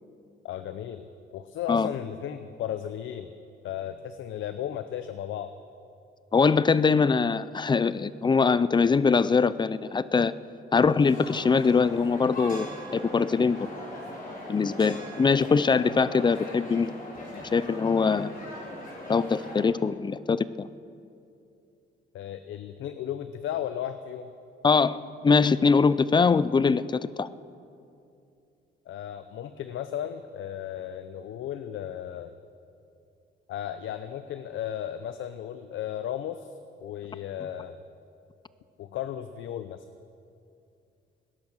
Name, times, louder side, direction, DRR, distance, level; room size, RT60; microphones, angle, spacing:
voice 1, 0.4-3.3 3.6-5.5 22.1-24.3 28.9-32.4 33.5-36.5 36.8-37.8 38.8-39.9, left 10 dB, 75° left, 11 dB, 0.7 m, -35 dB
voice 2, 6.3-10.3 10.7-13.7 14.5-16.9 17.3-18.3 19.1-20.7 24.6-27.3, left 5 dB, 20° left, 17 dB, 0.5 m, -23 dB
sound 1, 11.0-19.6, left 1 dB, 45° left, 4.5 m, -40 dB
18.5 x 10.5 x 6.6 m, 2.5 s
cardioid pair, 90°, 20 cm